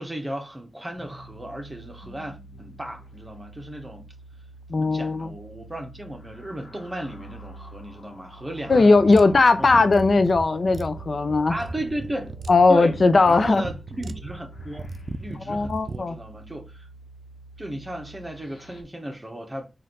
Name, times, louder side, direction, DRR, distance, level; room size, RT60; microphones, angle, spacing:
voice 1, 0.0-4.1 4.7-9.8 11.5-12.3 12.7-12.9 13.3-14.9 15.2-16.9 17.6-19.7, right 1 dB, 20° right, 1.1 m, -35 dB
sound 1, 0.9-18.8, right 1 dB, 80° left, 1.2 m, -46 dB
voice 2, 4.7-5.3 8.7-11.6 12.5-13.6 15.5-16.2, left 3 dB, 60° left, 0.4 m, -18 dB
sound 2, 8.7-16.0, right 3 dB, 65° right, 0.4 m, -37 dB
4.2 x 2.6 x 4.0 m
wide cardioid pair, 100°, 0 cm